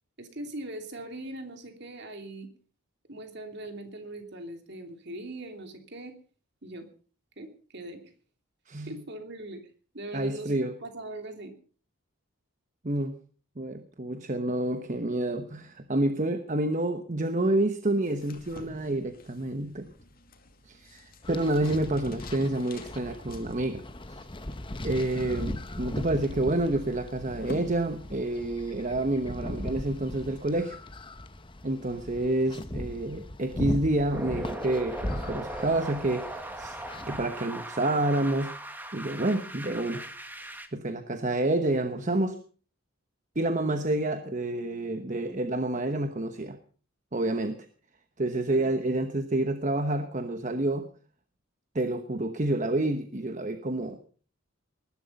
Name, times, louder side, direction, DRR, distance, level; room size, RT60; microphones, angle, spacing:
voice 1, 0.2-2.5 3.1-6.1 6.6-6.9 7.4-8.0 8.8-9.6 9.9-11.5 48.5-49.0, right 1 dB, 50° right, 6 dB, 3.0 m, -41 dB
voice 2, 10.1-10.7 12.8-13.2 13.6-19.9 20.6-23.8 24.1-24.2 24.8-30.8 31.6-36.8 37.1-38.5 38.9-40.0 40.7-42.4 43.3-46.6 47.1-47.7 48.2-50.9 51.7-54.0, right 1 dB, 35° right, 9 dB, 1.1 m, -28 dB
sound 1, 18.0-28.5, left 2 dB, 40° left, 2.5 m, -50 dB
sound 2, 21.2-37.3, left 1 dB, 25° left, 1.0 m, -39 dB
sound 3, 34.1-40.7, right 1 dB, 10° right, 1.6 m, -39 dB
19.5 x 11.5 x 5.4 m, 0.41 s
head